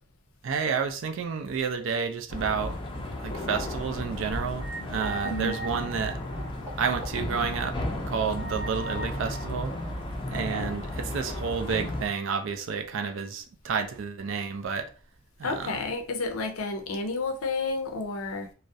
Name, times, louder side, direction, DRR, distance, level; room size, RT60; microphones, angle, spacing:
voice 1, 0.4-2.8 3.2-6.2 6.8-7.8 8.1-9.7 10.3-14.9 15.4-15.8, right 6 dB, 65° right, 0.4 m, -30 dB
sound 1, 2.3-12.1, left 1 dB, 25° left, 0.4 m, -34 dB
sound 2, 4.6-7.2 7.5-7.6 8.3-10.5, right 2 dB, 10° right, 0.7 m, -40 dB
voice 2, 5.2-5.6 15.4-18.5, left 3 dB, 85° left, 0.5 m, -31 dB
2.3 x 2.0 x 2.6 m
head